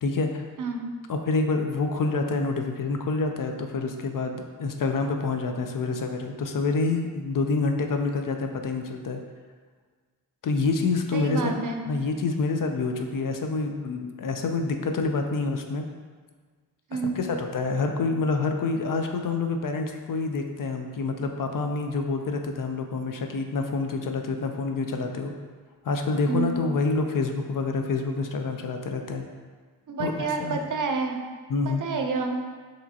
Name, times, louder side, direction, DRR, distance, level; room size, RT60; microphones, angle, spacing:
voice 1, 0.0-0.4 1.1-9.2 10.4-11.5 11.9-15.8 17.2-25.3 25.8-29.2 30.0-30.6 31.5-31.8, left 3 dB, 55° left, 4 dB, 0.5 m, -27 dB
voice 2, 0.6-0.9 11.1-11.8 16.9-17.2 26.3-26.6 29.9-31.2 31.7-32.3, right 4 dB, 50° right, 3 dB, 0.5 m, -29 dB
4.8 x 3.0 x 2.7 m, 1.5 s
cardioid pair, 55°, 39 cm